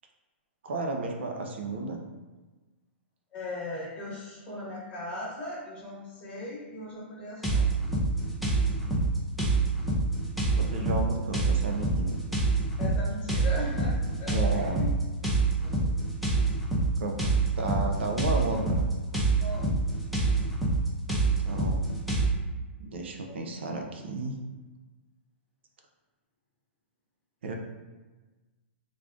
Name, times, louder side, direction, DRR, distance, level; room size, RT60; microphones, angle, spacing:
voice 1, 0.6-2.0 8.8-9.1 10.6-12.2 14.3-14.8 17.0-17.2 17.6-18.8 21.4-21.9 22.8-24.4 27.4-27.6, right 2 dB, 70° right, 2 dB, 0.6 m, -33 dB
voice 2, 3.3-7.6 12.8-14.9 15.6-16.0 17.6-17.8 19.4-19.8 23.3-23.5, left 2 dB, 15° left, -6 dB, 1.0 m, -39 dB
sound 1, 7.4-22.3, right 3 dB, ahead, 0.4 m, -26 dB
3.6 x 2.5 x 3.5 m, 1.2 s
hypercardioid pair, 170°, 6 cm